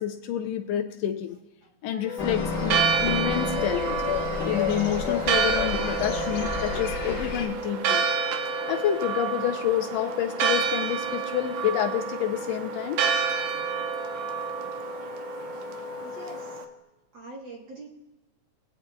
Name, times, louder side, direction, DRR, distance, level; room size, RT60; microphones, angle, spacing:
voice 1, 0.0-1.4 1.8-4.0 4.4-8.0 8.7-13.0, left 11 dB, 80° left, 4 dB, 1.5 m, -28 dB
Wind instrument woodwind instrument, 1.9-16.8, left 3 dB, 30° right, 0.7 m, -37 dB
sound 1, 2.2-7.5, left 5 dB, 45° left, 1.4 m, -30 dB
Church bell, 2.5-16.6, right 7 dB, 80° right, 2.1 m, -29 dB
voice 2, 16.0-16.7 17.1-17.9, right 2 dB, 55° right, -2 dB, 1.3 m, -44 dB
18.5 x 8.6 x 2.2 m, 1.1 s
omnidirectional pair, 3.5 m